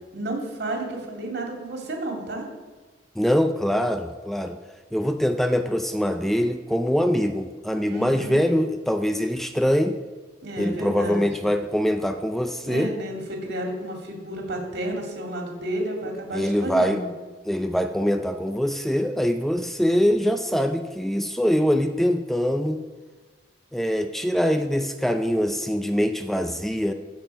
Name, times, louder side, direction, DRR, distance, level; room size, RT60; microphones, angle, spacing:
voice 1, 0.1-2.4 7.9-8.4 10.4-11.3 12.6-17.1, right 1 dB, 65° right, 2 dB, 2.4 m, -31 dB
voice 2, 3.2-4.6 4.9-9.9 10.6-12.9 16.3-17.0 17.4-22.8 23.7-26.9, equal, ahead, 7 dB, 0.4 m, -23 dB
14.5 x 6.2 x 4.6 m, 1.3 s
head